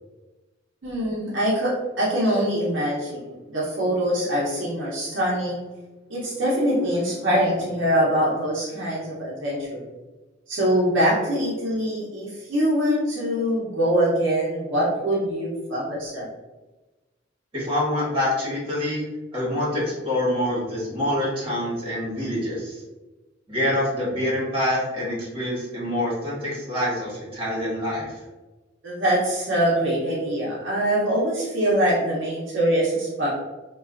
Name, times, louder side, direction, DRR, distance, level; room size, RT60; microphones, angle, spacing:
voice 1, 0.8-5.6 6.1-9.8 10.5-16.3 28.8-33.3, equal, 70° right, -6 dB, 0.7 m, -23 dB
voice 2, 17.5-19.0 19.3-22.8 23.5-28.1, left 1 dB, 30° right, -6 dB, 1.4 m, -26 dB
3.2 x 2.3 x 2.4 m, 1.2 s
head